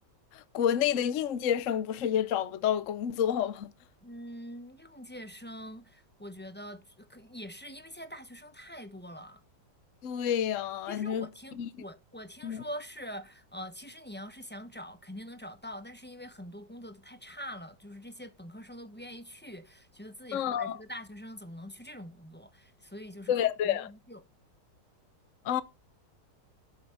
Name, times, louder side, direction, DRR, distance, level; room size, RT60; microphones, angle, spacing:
voice 1, 0.3-3.7 10.0-11.3 11.5-11.8 12.4-12.6 20.3-20.8 23.3-23.9 25.4-25.6, left 9 dB, 55° left, 1.0 m, -29 dB
voice 2, 4.0-9.4 10.9-24.2, equal, 5° left, 1.0 m, -44 dB
12.5 x 8.7 x 4.0 m
omnidirectional pair, 1.9 m